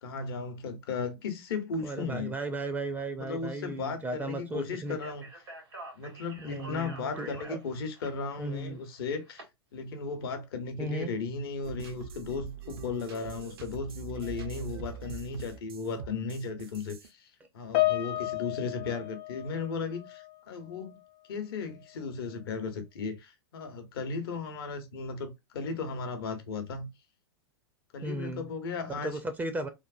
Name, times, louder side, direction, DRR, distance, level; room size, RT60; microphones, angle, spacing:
voice 1, 0.0-2.3 3.2-5.2 5.9-9.4 9.7-17.3 17.5-21.0 21.3-26.9 27.9-29.2, left 4 dB, 65° left, 0.8 m, -36 dB
voice 2, 1.8-5.0 6.4-7.6 8.4-8.8 10.8-11.1 28.0-28.5 29.0-29.7, right 2 dB, 15° right, 0.4 m, -35 dB
Speech, 4.9-9.4, right 1 dB, 90° right, 1.4 m, -47 dB
sound 1, 11.6-17.1, right 6 dB, 65° right, 0.6 m, -43 dB
Piano, 17.7-20.4 20.6-21.0 21.8-21.9, left 17 dB, 45° left, 0.5 m, -32 dB
3.1 x 2.0 x 2.4 m
hypercardioid pair, 105°, 13 cm